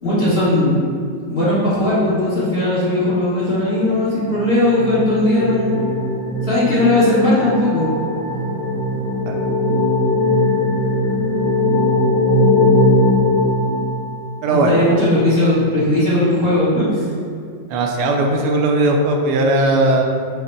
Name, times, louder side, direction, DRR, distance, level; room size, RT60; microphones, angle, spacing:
voice 1, 0.0-0.8 1.3-5.9 6.4-8.0 14.5-17.0, left 1 dB, 40° left, -10 dB, 1.0 m, -17 dB
sound 1, 3.8-14.5, left 1 dB, 75° left, 1.6 m, -19 dB
voice 2, 17.7-20.0, right 2 dB, 70° right, 2 dB, 1.1 m, -17 dB
5.1 x 2.1 x 4.4 m, 2.3 s
omnidirectional pair, 2.1 m